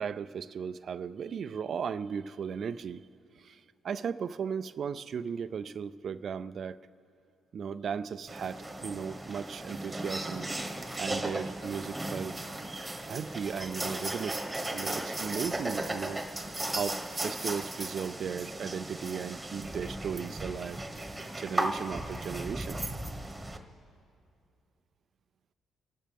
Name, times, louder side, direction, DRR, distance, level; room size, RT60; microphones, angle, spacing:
voice 1, 0.0-3.1 3.4-6.8 7.5-10.5 11.0-12.3 13.1-14.4 14.7-16.2 16.7-20.8 21.4-22.8, right 7 dB, 55° right, 13 dB, 0.4 m, -36 dB
sound 1, 8.3-23.6, right 1 dB, 15° right, 1.3 m, -36 dB
27.0 x 12.0 x 3.5 m, 2.5 s
cardioid pair, 90°, 0 cm